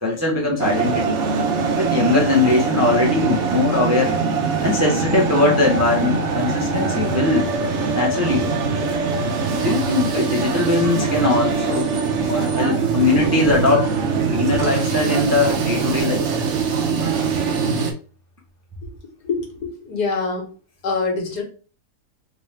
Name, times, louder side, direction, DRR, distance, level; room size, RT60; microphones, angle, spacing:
voice 1, 0.0-1.2 1.8-4.2 4.6-7.5 7.9-8.6 9.5-12.0 12.3-13.9 14.3-16.2, left 3 dB, 15° right, -2 dB, 0.6 m, -20 dB
sound 1, 0.6-17.9, right 5 dB, 60° right, 0.8 m, -22 dB
voice 2, 19.2-20.5 20.8-21.4, left 4 dB, 75° left, 1 dB, 1.8 m, -24 dB
3.6 x 2.9 x 3.2 m, 0.38 s
omnidirectional pair, 1.7 m